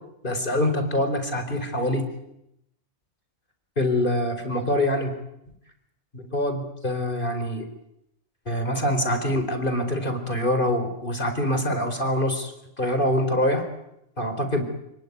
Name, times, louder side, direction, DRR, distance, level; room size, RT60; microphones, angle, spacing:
voice 1, 0.2-2.1 3.8-5.1 6.1-7.7 8.5-12.5 12.8-13.7 14.2-14.6, left 1 dB, 45° left, 8 dB, 4.5 m, -25 dB
30.0 x 19.0 x 9.5 m, 0.81 s
omnidirectional pair, 1.2 m